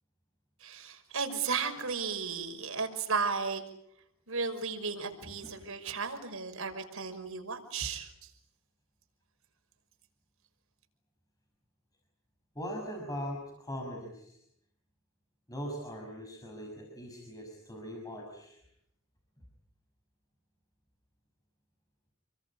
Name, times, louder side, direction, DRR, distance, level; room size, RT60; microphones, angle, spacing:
voice 1, 0.6-3.6 4.3-8.1, right 5 dB, 75° right, 5 dB, 5.8 m, -34 dB
voice 2, 12.5-14.4 15.5-18.6, equal, 15° left, 1 dB, 6.0 m, -41 dB
29.5 x 23.0 x 8.6 m, 0.76 s
head